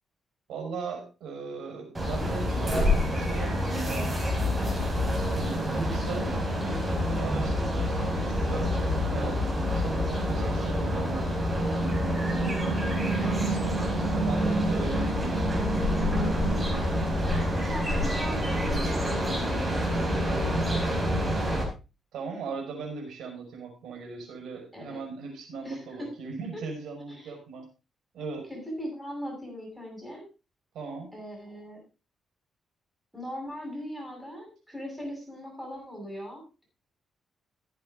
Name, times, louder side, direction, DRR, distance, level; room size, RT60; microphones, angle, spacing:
voice 1, 0.5-2.9 3.1-4.2 5.2-15.6 22.1-27.7 28.1-28.5 30.7-31.1, right 4 dB, 85° right, 2 dB, 5.5 m, -38 dB
sound 1, 1.9-21.6, equal, 20° right, 4.8 m, -27 dB
voice 2, 17.5-21.1 24.7-25.0 25.6-26.1 26.5-26.6 27.1-27.3 28.5-30.3 31.1-31.8 33.1-36.6, equal, ahead, -1 dB, 7.3 m, -40 dB
15.0 x 8.5 x 3.8 m, 0.30 s
cardioid pair, 120°, 0 cm